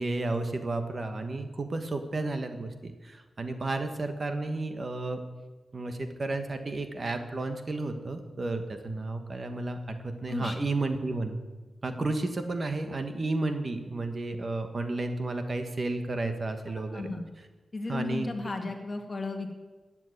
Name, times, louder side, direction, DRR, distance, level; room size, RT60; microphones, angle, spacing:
voice 1, 0.0-5.2 5.7-11.4 11.8-17.1 17.9-18.3, right 2 dB, 40° right, 7 dB, 1.3 m, -32 dB
voice 2, 16.7-17.2 17.7-19.5, left 3 dB, 30° left, 3 dB, 2.0 m, -35 dB
14.5 x 7.5 x 9.8 m, 1.2 s
wide cardioid pair, 120°, 0 cm